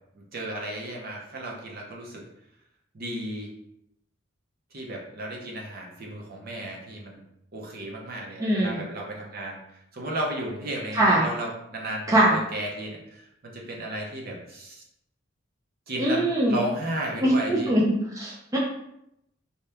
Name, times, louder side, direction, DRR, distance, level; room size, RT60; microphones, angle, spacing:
voice 1, 0.1-2.2 2.9-3.5 4.7-7.2 7.5-14.8 15.9-17.7, right 1 dB, 50° right, -1 dB, 0.7 m, -34 dB
voice 2, 8.4-8.8 10.9-11.2 12.1-12.4 16.0-16.5 17.2-17.8 18.1-18.6, right 1 dB, 15° right, -4 dB, 0.4 m, -22 dB
2.8 x 2.3 x 3.4 m, 0.80 s
head